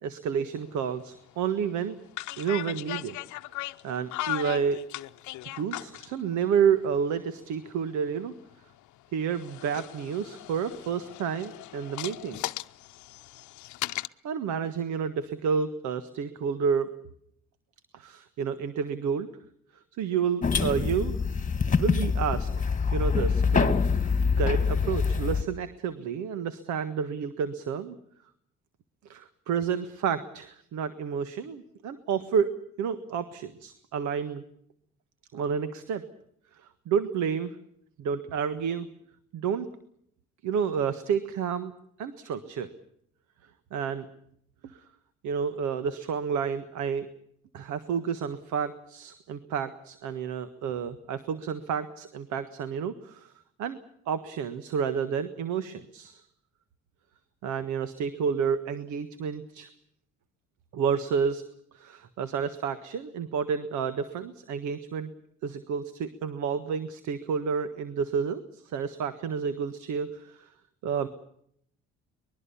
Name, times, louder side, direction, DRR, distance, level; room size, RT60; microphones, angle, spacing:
voice 1, 0.0-2.0 2.4-3.2 3.8-4.8 5.4-8.3 9.1-12.4 13.9-16.9 17.9-19.3 20.0-21.1 21.8-24.1 24.4-27.9 29.0-32.5 32.8-34.4 35.3-36.0 36.5-37.6 38.0-38.9 39.3-39.7 40.4-41.7 42.0-42.7 43.7-44.1 44.6-44.8 45.2-47.1 47.5-53.3 53.6-53.8 54.1-56.2 57.4-59.7 60.7-61.4 61.7-65.1 65.4-70.5 70.8-71.1, right 7 dB, 75° right, 12 dB, 1.6 m, -30 dB
sound 1, 0.6-0.7 1.1-1.3 2.1-6.1 7.2-8.9 9.3-14.1, left 17 dB, 75° left, 0.8 m, -37 dB
sound 2, 20.4-25.4, left 5 dB, 25° left, 1.9 m, -25 dB
24.0 x 21.5 x 7.1 m, 0.69 s
supercardioid pair, 85°, 29 cm